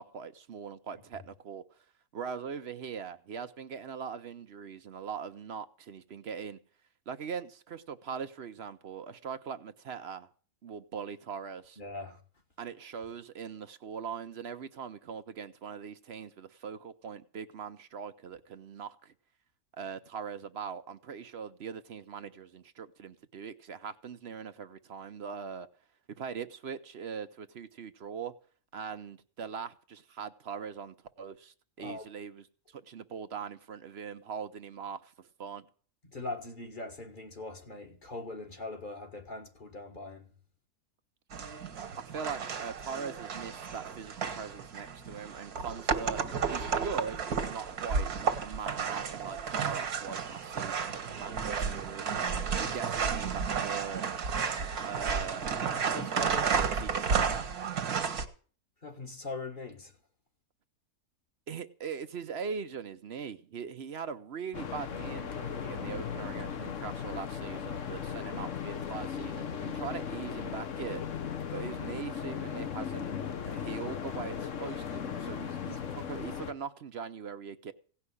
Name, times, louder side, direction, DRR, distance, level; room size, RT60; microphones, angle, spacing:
voice 1, 0.0-1.8 2.1-6.6 7.1-10.3 10.6-11.8 12.6-19.1 19.8-25.7 26.2-28.3 28.7-35.6 42.0-46.2 46.5-52.1 52.6-54.0 54.8-56.3 56.5-57.5 61.5-71.1 71.5-73.2 73.5-77.7, right 6 dB, 50° right, 0.8 m, -41 dB
voice 2, 11.8-12.2 31.8-32.1 36.1-40.3 52.6-52.8 55.7-56.6 58.8-59.9 75.6-76.1, left 2 dB, 35° left, 1.6 m, -42 dB
sound 1, 41.3-58.3, right 6 dB, 75° right, 1.9 m, -32 dB
sound 2, 64.5-76.5, left 7 dB, 60° left, 1.2 m, -37 dB
17.0 x 5.8 x 9.8 m
omnidirectional pair, 1.6 m